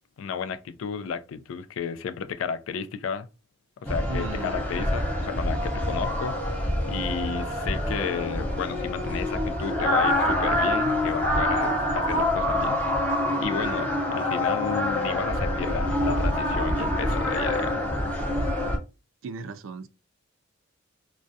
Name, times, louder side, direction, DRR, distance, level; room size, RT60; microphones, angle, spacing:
voice 1, 0.2-3.3 3.8-17.9, left 6 dB, 80° left, 0.3 m, -33 dB
sound 1, 3.9-18.8, left 1 dB, 10° left, 0.6 m, -26 dB
voice 2, 4.1-4.6 19.2-19.9, right 4 dB, 75° right, 0.3 m, -36 dB
2.3 x 2.1 x 2.6 m
head